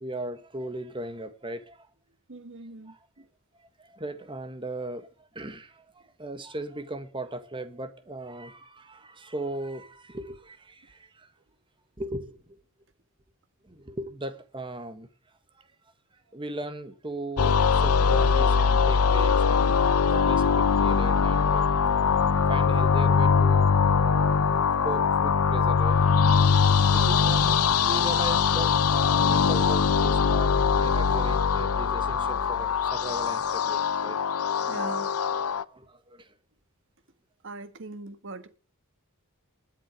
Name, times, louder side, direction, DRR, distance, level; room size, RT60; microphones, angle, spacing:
voice 1, 0.0-1.9 2.9-3.1 3.8-11.3 12.0-12.6 13.6-15.1 15.6-15.7 16.3-19.8 20.1-21.7 22.5-24.5 24.8-34.2 35.7-36.3, right 1 dB, 25° right, 1.5 m, -38 dB
voice 2, 2.3-3.3 26.9-27.2 34.7-35.1 37.4-38.5, right 2 dB, 60° right, 1.5 m, -39 dB
sound 1, 17.4-35.6, left 6 dB, 90° left, 0.7 m, -22 dB
20.5 x 7.5 x 5.0 m
head